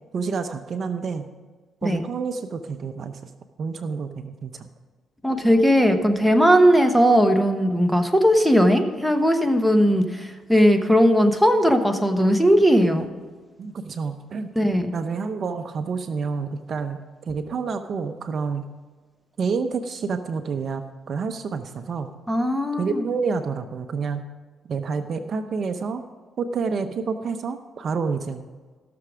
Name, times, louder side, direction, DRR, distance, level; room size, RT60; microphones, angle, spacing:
voice 1, 0.1-1.3 1.8-3.3 3.6-4.7 13.6-14.5 14.9-17.0 17.3-18.6 19.4-22.1 22.8-24.2 24.7-26.0 26.4-28.4, right 5 dB, 55° right, 8 dB, 0.7 m, -28 dB
voice 2, 5.2-13.1 14.5-14.9 22.3-23.0, equal, ahead, 4 dB, 1.3 m, -18 dB
16.0 x 6.8 x 5.0 m, 1.4 s
cardioid pair, 90°, 0 cm